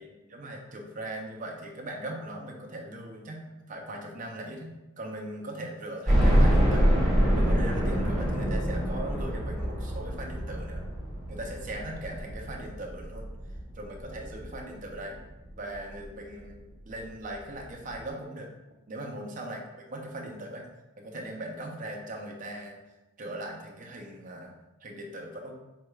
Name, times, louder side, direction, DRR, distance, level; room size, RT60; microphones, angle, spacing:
voice 1, 0.0-7.0 7.3-10.8 11.3-13.3 13.7-15.2 15.6-18.5 18.9-19.6 19.9-20.6 21.0-22.8 23.2-24.5 24.8-25.5, right 1 dB, 40° right, 1 dB, 0.6 m, -39 dB
sound 1, 6.1-15.0 15.4-15.5 15.9-16.0 17.2-17.3 17.6-17.7, equal, ahead, 1.4 m, -26 dB
4.6 x 3.1 x 2.3 m, 1.0 s
head